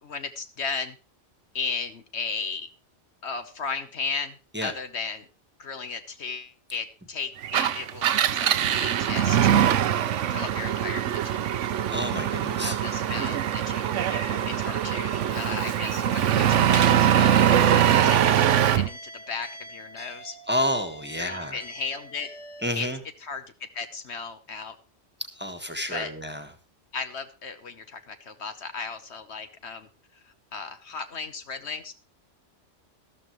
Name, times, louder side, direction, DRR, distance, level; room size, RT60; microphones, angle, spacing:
voice 1, 0.0-1.0 1.5-2.7 3.2-5.3 5.6-9.5 10.3-11.4 12.6-20.4 21.2-22.3 22.7-22.9 23.2-24.8 25.9-26.1 26.9-29.9 30.2-31.9, left 5 dB, 65° left, 9 dB, 1.3 m, -35 dB
Engine, 7.4-18.9, right 10 dB, 80° right, 1.1 m, -22 dB
voice 2, 11.9-12.8 17.8-18.2 20.5-21.6 22.6-23.0 25.4-26.5, equal, 10° right, 5 dB, 1.5 m, -30 dB
sound 1, 14.0-22.7, equal, 30° left, 4.6 m, -45 dB
13.5 x 13.0 x 3.1 m, 0.34 s
omnidirectional pair, 1.2 m